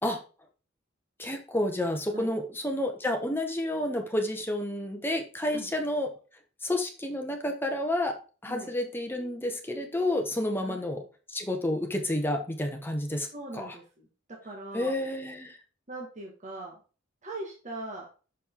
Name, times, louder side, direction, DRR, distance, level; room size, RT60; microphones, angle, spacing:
voice 1, 1.2-6.1 6.6-8.1 8.4-11.0 11.3-13.3 13.5-13.8 14.7-15.6, left 1 dB, 10° left, 3 dB, 1.1 m, -30 dB
voice 2, 13.3-14.1 14.4-14.9 15.9-16.8 17.2-18.0, right 2 dB, 35° right, -1 dB, 1.5 m, -40 dB
6.4 x 5.2 x 3.7 m, 0.35 s
head